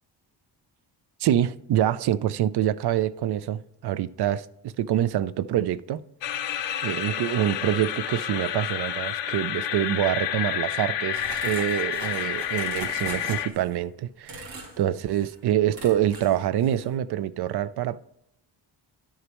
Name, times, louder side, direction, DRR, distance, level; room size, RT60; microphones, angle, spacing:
voice 1, 1.2-4.4 4.8-6.0 6.8-18.0, right 11 dB, 65° right, 0.5 m, -26 dB
Swarm Drone, 6.2-13.5, left 10 dB, 75° left, 0.7 m, -30 dB
sound 1, 11.1-13.8 14.3-14.8 15.1-15.4 15.7-16.4 16.6-16.9, right 2 dB, 85° right, 2.2 m, -41 dB
11.0 x 6.5 x 3.0 m
cardioid pair, 105°, 44 cm